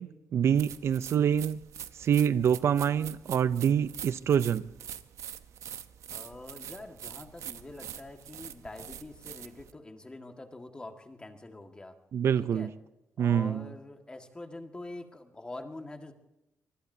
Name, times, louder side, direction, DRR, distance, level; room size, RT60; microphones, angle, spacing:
voice 1, 0.0-1.6 2.0-4.7 12.1-12.7 13.2-13.7, right 8 dB, 60° right, 0.5 m, -26 dB
sound 1, 0.5-9.7, right 9 dB, 75° right, 0.8 m, -44 dB
voice 2, 6.1-11.9 12.4-12.7 13.2-16.1, left 2 dB, 15° left, 1.6 m, -45 dB
24.5 x 20.0 x 2.7 m
cardioid pair, 130°, 5 cm